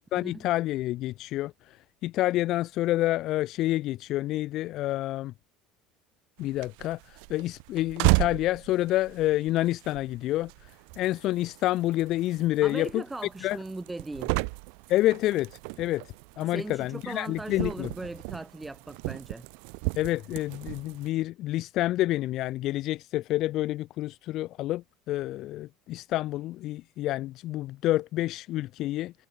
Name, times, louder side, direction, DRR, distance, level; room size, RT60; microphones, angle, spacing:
voice 1, 0.0-1.8 2.0-5.3 6.4-10.7 11.0-13.0 13.4-13.6 14.9-17.9 19.9-29.1, left 16 dB, 40° left, 6.0 m, -28 dB
sound 1, 6.4-21.1, right 40 dB or more, 70° right, 4.0 m, -34 dB
voice 2, 12.6-14.4 16.4-19.5, right 2 dB, 5° right, 7.8 m, -38 dB
cardioid pair, 180°, 0 cm